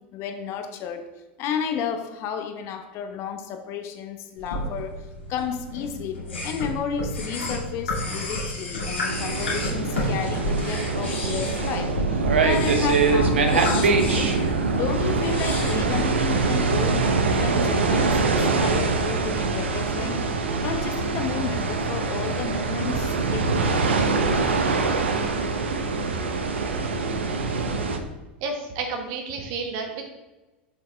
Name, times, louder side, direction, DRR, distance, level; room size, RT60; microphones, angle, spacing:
voice 1, 0.1-1.0 1.4-14.3 14.7-17.1 17.4-20.2 20.6-23.9, left 7 dB, 50° left, 6 dB, 0.9 m, -32 dB
sound 1, 4.4-16.4, left 1 dB, 85° left, 2.2 m, -31 dB
sound 2, 9.1-28.0, right 4 dB, 80° right, 0.7 m, -24 dB
voice 2, 28.4-30.1, right 4 dB, 55° right, 4 dB, 1.3 m, -31 dB
6.8 x 5.2 x 3.4 m, 1.1 s
hypercardioid pair, 90°, 6 cm